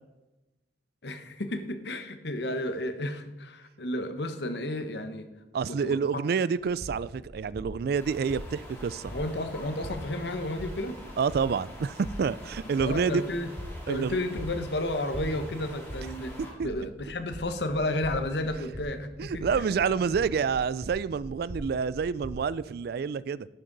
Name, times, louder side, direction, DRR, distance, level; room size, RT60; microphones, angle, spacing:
voice 1, 1.0-5.3 5.7-6.2 9.1-11.0 12.8-13.5 13.9-16.4 16.6-19.6 20.0-20.1, left 1 dB, 70° left, 9 dB, 1.0 m, -32 dB
voice 2, 5.5-9.1 11.2-13.2 13.9-14.2 16.6-16.7 19.2-23.5, right 6 dB, 60° right, 19 dB, 0.3 m, -28 dB
sound 1, 6.6-22.5, equal, 25° right, 2.4 m, -43 dB
sound 2, 8.0-16.5, equal, 15° left, 2.7 m, -47 dB
11.5 x 9.6 x 4.0 m, 1.1 s
head